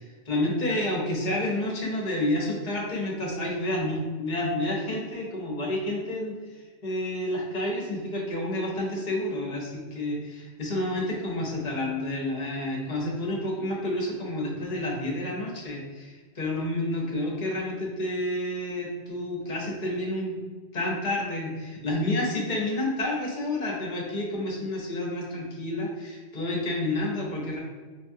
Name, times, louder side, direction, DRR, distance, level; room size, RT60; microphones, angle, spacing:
voice 1, 0.0-20.4 20.7-27.6, left 1 dB, 40° left, -2 dB, 0.9 m, -29 dB
5.0 x 2.3 x 2.6 m, 1.4 s
omnidirectional pair, 1.3 m